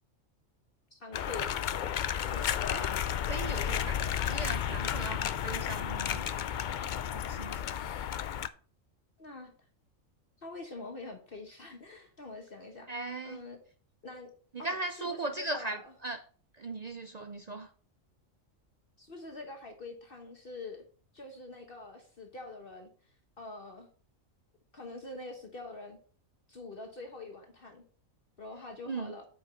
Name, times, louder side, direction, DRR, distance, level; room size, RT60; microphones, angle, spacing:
voice 1, 0.9-1.6 2.2-2.6 9.2-9.5 10.4-12.9 13.2-13.6 14.0-14.3 14.6-15.9 19.0-20.8 21.1-23.9 24.7-26.0 26.5-27.8 28.4-29.3, left 2 dB, 45° left, 1.3 m, -45 dB
sound 1, 1.1-8.5, left 9 dB, 75° left, 0.4 m, -32 dB
voice 2, 3.3-6.3 7.1-7.6 12.9-13.4 14.5-16.2 16.6-17.7 28.9-29.1, right 2 dB, 50° right, 0.5 m, -38 dB
8.7 x 5.3 x 4.3 m
omnidirectional pair, 1.4 m